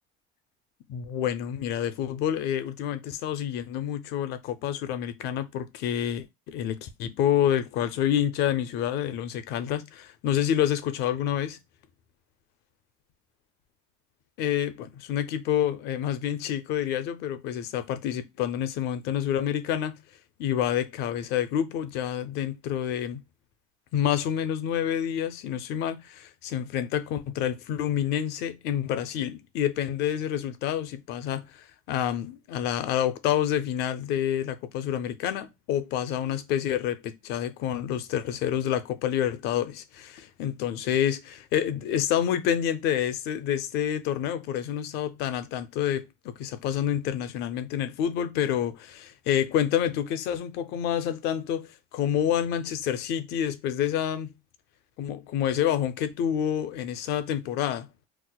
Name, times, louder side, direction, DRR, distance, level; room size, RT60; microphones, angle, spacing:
voice 1, 0.9-11.6 14.4-20.0 20.4-23.2 23.9-54.3 55.0-57.9, left 10 dB, 55° left, 0.5 m, -28 dB
2.4 x 2.1 x 3.8 m
cardioid pair, 155°, 20 cm